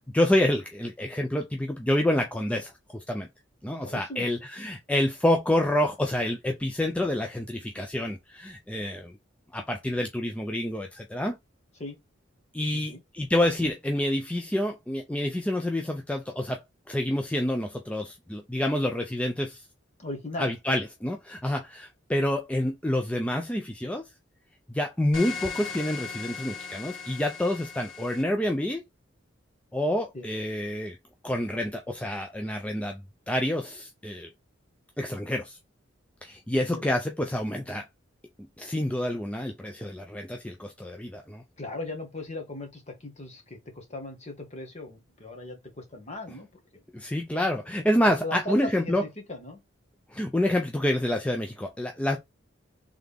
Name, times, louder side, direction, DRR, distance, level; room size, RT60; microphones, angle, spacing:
voice 1, 0.0-3.3 3.6-9.1 9.5-11.4 12.5-16.6 16.9-19.6 20.4-24.0 24.7-28.8 29.7-31.0 31.2-33.0 33.3-34.3 35.0-35.6 36.2-37.8 38.6-41.4 46.9-49.0 50.1-52.2, left 1 dB, 5° left, 0.4 m, -28 dB
voice 2, 3.6-4.3 11.8-12.0 12.7-13.0 20.0-20.5 30.1-30.3 36.5-36.8 41.6-46.5 48.2-49.6, left 2 dB, 35° left, 1.5 m, -38 dB
sound 1, 25.1-28.2, left 6 dB, 75° left, 1.4 m, -38 dB
3.8 x 3.5 x 3.5 m
head